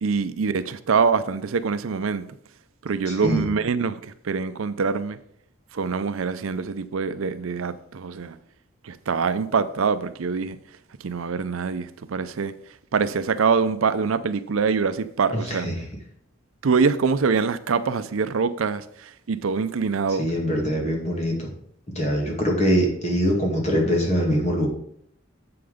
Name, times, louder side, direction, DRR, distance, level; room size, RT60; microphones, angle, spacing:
voice 1, 0.0-2.3 2.8-5.2 5.7-8.4 8.8-10.6 11.0-12.5 12.9-15.7 16.6-20.3, right 5 dB, 80° right, 0.5 m, -24 dB
voice 2, 3.1-3.4 15.5-15.7 20.2-21.4 21.9-24.7, equal, 35° left, 2.3 m, -23 dB
7.8 x 5.8 x 5.0 m
head